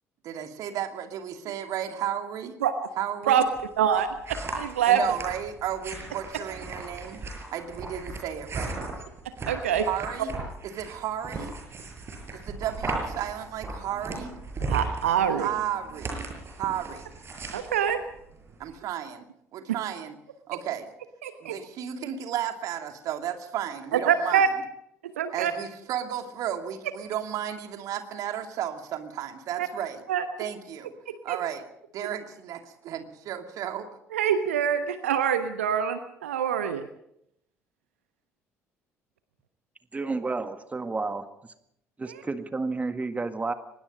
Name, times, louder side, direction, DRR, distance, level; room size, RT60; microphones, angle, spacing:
voice 1, 0.2-2.5 3.0-3.5 4.8-7.2 7.5-8.8 9.9-10.3 10.6-11.5 12.3-14.3 15.4-16.2 16.6-17.0 18.6-19.3 19.5-20.2 20.5-20.9 21.4-24.5 25.3-30.0 30.4-30.9 31.2-31.6 31.9-33.9, right 10 dB, 55° right, 6 dB, 2.5 m, -33 dB
sound 1, 3.5-18.8, right 3 dB, 35° right, 7.0 m, -37 dB
voice 2, 3.8-5.0 9.5-9.9 14.7-15.5 17.5-18.0 21.2-21.6 23.9-24.5 25.2-25.5 29.6-29.7 30.1-30.2 31.1-31.4 34.1-36.8, right 8 dB, 75° right, 10 dB, 1.1 m, -25 dB
voice 3, 39.9-41.5 42.0-43.5, right 3 dB, 20° right, 9 dB, 1.7 m, -31 dB
24.0 x 20.5 x 5.3 m, 0.76 s
figure-of-eight pair, 50°, 7 cm